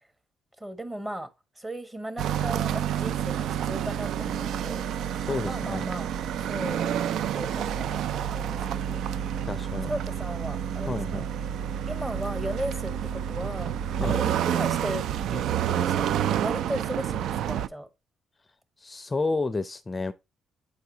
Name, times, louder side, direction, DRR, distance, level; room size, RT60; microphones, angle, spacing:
voice 1, 0.6-1.3 1.6-4.9 5.4-6.1 6.4-7.0 7.3-9.0 9.9-11.0 11.9-17.9, right 1 dB, 15° right, 1.2 m, -36 dB
sound 1, 2.2-17.7, right 10 dB, 75° right, 0.4 m, -29 dB
voice 2, 5.2-5.8 9.5-9.9 10.8-11.2 14.0-14.2 18.8-20.1, left 3 dB, 25° left, 0.5 m, -30 dB
8.4 x 4.7 x 2.7 m
cardioid pair, 90°, 0 cm